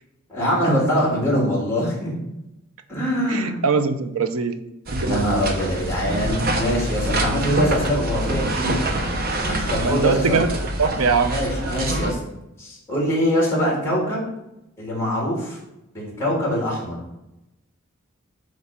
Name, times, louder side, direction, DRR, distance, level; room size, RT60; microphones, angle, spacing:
voice 1, 0.3-2.2 2.9-3.6 5.0-8.8 9.4-10.4 11.3-12.2 12.6-14.2 14.8-15.6 15.9-16.9, equal, 10° left, -4 dB, 2.7 m, -23 dB
voice 2, 3.3-4.6 4.9-5.2 9.8-10.5 10.8-11.4, right 5 dB, 90° right, 10 dB, 0.6 m, -22 dB
sound 1, 4.9-12.1, right 1 dB, 45° right, 0.8 m, -26 dB
8.1 x 3.2 x 5.9 m, 0.91 s
head